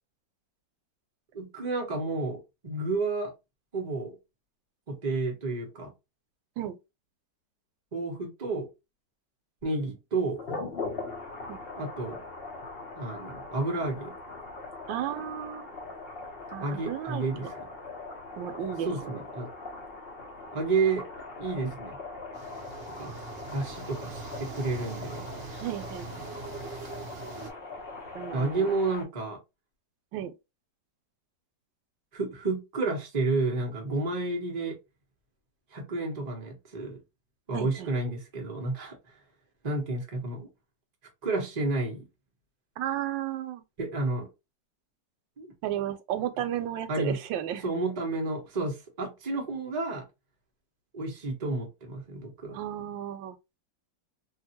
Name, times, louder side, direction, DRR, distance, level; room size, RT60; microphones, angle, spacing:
voice 1, 1.3-3.3 3.7-4.2 4.9-5.9 7.9-8.7 9.6-10.4 11.8-12.2 13.0-14.1 16.6-17.5 18.8-19.5 20.5-21.1 21.4-22.0 23.0-23.1 23.5-25.3 28.3-29.4 32.1-34.8 35.7-37.0 37.5-39.0 39.6-40.5 41.2-42.1 43.8-44.3 45.4-45.5 46.9-47.2 47.6-50.0 50.9-52.6, right 3 dB, 35° right, 0.7 m, -31 dB
sound 1, 10.3-29.0, left 3 dB, 45° left, 0.8 m, -41 dB
voice 2, 14.9-15.7 16.5-17.5 18.4-19.2 25.6-26.3 28.1-28.7 30.1-30.3 37.5-37.9 42.8-43.6 45.6-47.7 52.5-53.4, right 11 dB, 90° right, 1.3 m, -34 dB
sound 2, 22.3-27.5, right 5 dB, 60° right, 0.7 m, -42 dB
2.8 x 2.6 x 2.8 m
omnidirectional pair, 2.0 m